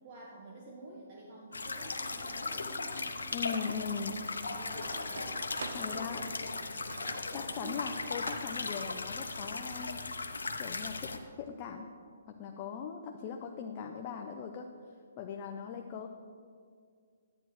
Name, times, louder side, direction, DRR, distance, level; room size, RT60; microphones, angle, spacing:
voice 1, 0.0-3.2 3.9-5.5 5.8-6.7 7.3-8.0, right 2 dB, 40° right, -3 dB, 1.2 m, -49 dB
sound 1, 1.5-11.2, left 3 dB, 90° left, 0.7 m, -37 dB
sound 2, 1.8-3.0 3.5-3.7 4.4-5.7 6.1-6.4 6.9-8.1 8.6-8.7, left 1 dB, ahead, 2.0 m, -51 dB
voice 2, 3.3-4.2 5.7-6.2 7.3-10.2 10.6-11.9 12.3-14.7 15.2-16.1, left 6 dB, 35° left, 4 dB, 0.5 m, -40 dB
sound 3, 3.7-3.8 4.3-7.3 8.2-8.6, right 3 dB, 75° right, 0.7 m, -46 dB
10.5 x 9.1 x 3.1 m, 2.1 s
hypercardioid pair, 140°, 0 cm